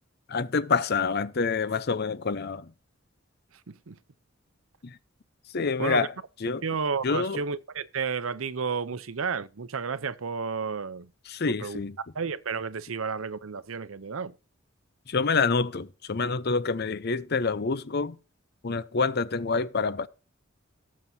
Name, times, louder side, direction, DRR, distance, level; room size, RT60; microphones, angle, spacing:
voice 1, 0.3-2.7 4.8-5.0 5.5-6.1 6.4-6.6 7.0-7.4 11.3-12.0 15.1-18.2 18.6-20.1, left 4 dB, 50° left, 0.7 m, -27 dB
voice 2, 3.7-4.0 5.8-6.1 6.6-11.1 11.5-11.8 12.1-14.3, right 5 dB, 85° right, 0.7 m, -32 dB
18.0 x 7.5 x 2.8 m
head